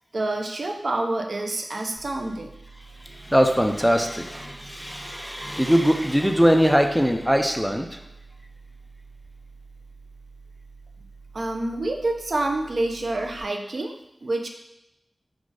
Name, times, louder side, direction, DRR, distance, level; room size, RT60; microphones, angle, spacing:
voice 1, 0.1-2.5 11.3-14.0 14.2-14.5, right 2 dB, 65° right, 3 dB, 0.5 m, -27 dB
sound 1, 2.0-13.4, right 4 dB, 25° left, 0.9 m, -48 dB
voice 2, 3.0-8.0, equal, ahead, 5 dB, 0.4 m, -21 dB
4.2 x 2.4 x 4.8 m, 0.88 s
wide cardioid pair, 90°, 0 cm